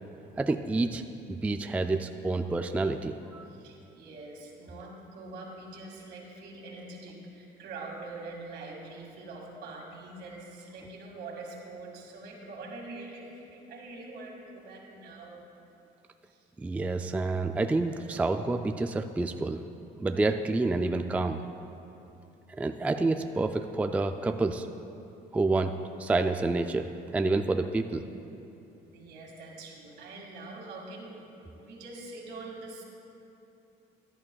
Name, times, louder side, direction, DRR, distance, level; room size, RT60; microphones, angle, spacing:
voice 1, 0.4-1.0 1.3-3.4 16.6-19.6 20.0-21.4 22.6-24.7 25.3-25.7 26.0-26.9 27.1-28.0, right 3 dB, 10° right, 7 dB, 0.3 m, -28 dB
voice 2, 3.5-15.4 16.3-16.4 28.8-31.2 31.5-32.8, right 2 dB, 75° right, 0 dB, 2.0 m, -44 dB
17.0 x 11.0 x 2.3 m, 2.9 s
cardioid pair, 110°, 17 cm